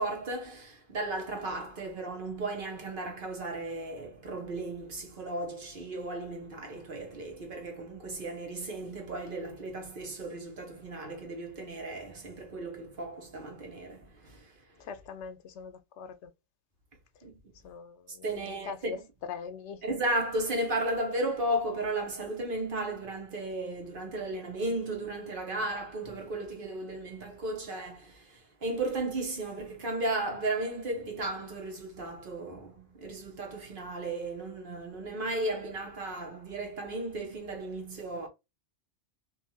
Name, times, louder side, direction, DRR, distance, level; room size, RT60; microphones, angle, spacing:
voice 1, 0.0-14.5 17.2-17.4 18.2-19.0 19.8-38.3, right 2 dB, 50° right, 1.1 m, -35 dB
voice 2, 14.8-16.3 17.6-19.0 19.3-19.8, left 6 dB, 80° left, 0.9 m, -42 dB
2.6 x 2.4 x 2.8 m
omnidirectional pair, 1.2 m